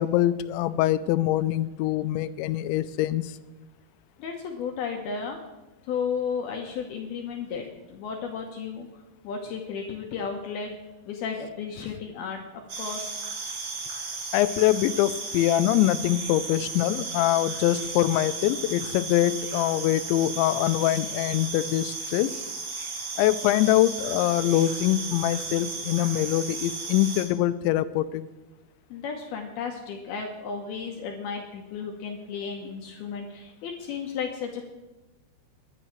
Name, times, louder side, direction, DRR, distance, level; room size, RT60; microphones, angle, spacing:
voice 1, 0.0-3.3 14.3-22.3 23.2-28.2, left 14 dB, 90° left, 14 dB, 2.9 m, -24 dB
voice 2, 4.2-5.4 5.8-8.9 9.2-10.7 11.1-12.4 12.8-13.2 28.9-34.7, left 6 dB, 70° left, 2 dB, 2.6 m, -33 dB
sound 1, 12.7-27.2, right 4 dB, 45° right, 2.1 m, -35 dB
21.5 x 10.0 x 3.2 m, 1.1 s
omnidirectional pair, 5.2 m